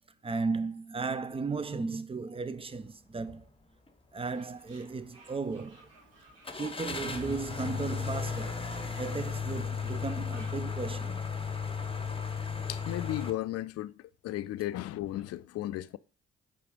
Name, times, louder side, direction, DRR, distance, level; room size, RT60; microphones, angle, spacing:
voice 1, 0.2-3.4 4.1-5.9 6.6-11.3, right 4 dB, 20° right, 0.6 m, -35 dB
sound 1, 3.2-3.4 3.9-4.0 6.4-13.3, left 5 dB, 15° left, 1.0 m, -35 dB
Fowl, 4.1-10.6, right 2 dB, 75° right, 2.2 m, -58 dB
voice 2, 12.7-16.0, left 14 dB, 50° left, 0.5 m, -35 dB
4.9 x 4.8 x 5.1 m
figure-of-eight pair, 40°, 32 cm